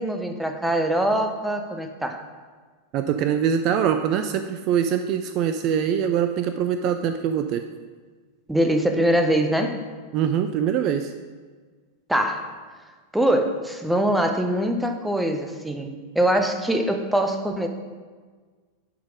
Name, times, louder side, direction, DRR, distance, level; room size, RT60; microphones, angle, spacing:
voice 1, 0.0-2.2 8.5-9.8 12.1-12.5 13.1-17.7, right 1 dB, 5° right, 5 dB, 0.7 m, -23 dB
voice 2, 2.9-7.6 10.1-11.1, right 8 dB, 40° right, 8 dB, 0.4 m, -23 dB
10.0 x 4.2 x 4.9 m, 1.5 s
figure-of-eight pair, 90°, 0 cm